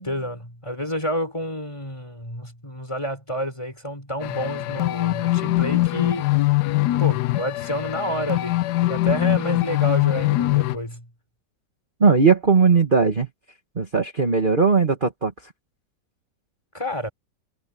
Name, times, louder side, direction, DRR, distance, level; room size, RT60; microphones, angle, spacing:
voice 1, 0.0-6.3 7.0-11.1 16.7-17.1, equal, 15° left, 4.2 m, -29 dB
sound 1, 4.2-10.8, left 18 dB, 75° left, 1.1 m, -22 dB
voice 2, 12.0-13.3 13.7-15.3, right 5 dB, 30° right, 1.7 m, -18 dB
omnidirectional pair, 1.9 m